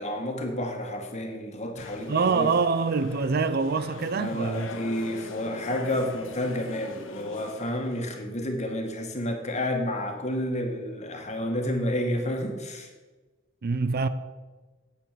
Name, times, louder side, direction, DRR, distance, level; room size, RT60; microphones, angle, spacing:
voice 1, 0.0-2.5 4.2-12.9, left 1 dB, 35° left, 1.8 m, -30 dB
sound 1, 1.8-8.1, left 3 dB, 70° left, 1.0 m, -42 dB
voice 2, 2.1-4.7 13.6-14.1, right 4 dB, 55° right, 0.5 m, -25 dB
9.3 x 8.5 x 6.8 m
head